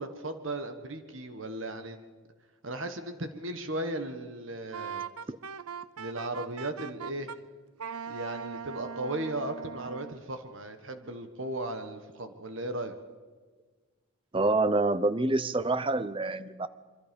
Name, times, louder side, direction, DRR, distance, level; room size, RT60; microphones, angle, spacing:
voice 1, 0.0-2.1 2.6-5.0 6.0-7.3 8.1-12.9, right 1 dB, 60° right, 8 dB, 1.4 m, -36 dB
Wind instrument woodwind instrument, 4.7-7.4 7.8-10.2, right 6 dB, 85° right, 0.6 m, -40 dB
voice 2, 14.3-16.7, right 2 dB, 25° right, 15 dB, 0.7 m, -27 dB
26.0 x 24.0 x 5.3 m, 1.4 s
head